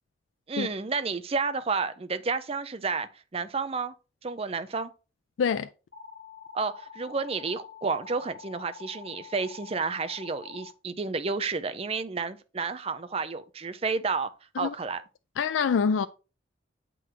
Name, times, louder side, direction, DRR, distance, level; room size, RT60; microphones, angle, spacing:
voice 1, 0.5-3.9 4.2-4.9 6.5-14.3 14.6-15.0, right 4 dB, 30° right, 0.5 m, -31 dB
voice 2, 5.4-5.7 14.6-14.7 15.4-16.1, left 6 dB, 85° left, 0.3 m, -25 dB
sound 1, 5.9-10.7, left 6 dB, 65° left, 1.0 m, -46 dB
7.9 x 3.9 x 4.6 m
head